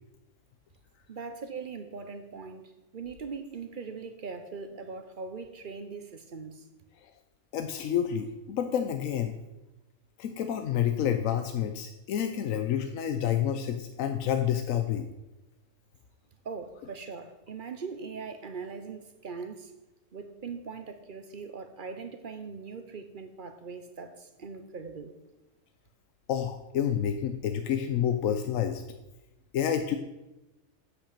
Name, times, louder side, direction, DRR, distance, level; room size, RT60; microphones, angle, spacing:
voice 1, 1.1-6.7 16.4-19.7 20.1-25.2, right 5 dB, 45° right, 8 dB, 0.8 m, -41 dB
voice 2, 7.5-9.3 10.2-15.1 26.3-28.8 29.5-30.0, left 9 dB, 90° left, 7 dB, 1.0 m, -29 dB
8.4 x 5.9 x 6.6 m, 1.0 s
omnidirectional pair, 1.3 m